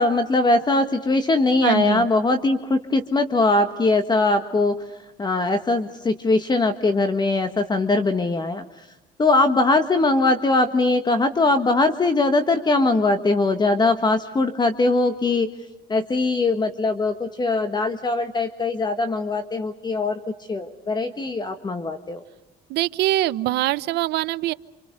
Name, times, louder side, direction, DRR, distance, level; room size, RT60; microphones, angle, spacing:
voice 1, 0.0-8.9 9.2-15.5 15.9-20.2 20.5-22.2, left 2 dB, 25° left, 8 dB, 1.5 m, -21 dB
voice 2, 1.6-2.1 22.7-24.5, right 15 dB, 80° right, 15 dB, 0.9 m, -23 dB
28.0 x 27.0 x 6.7 m, 0.94 s
cardioid pair, 110°, 17 cm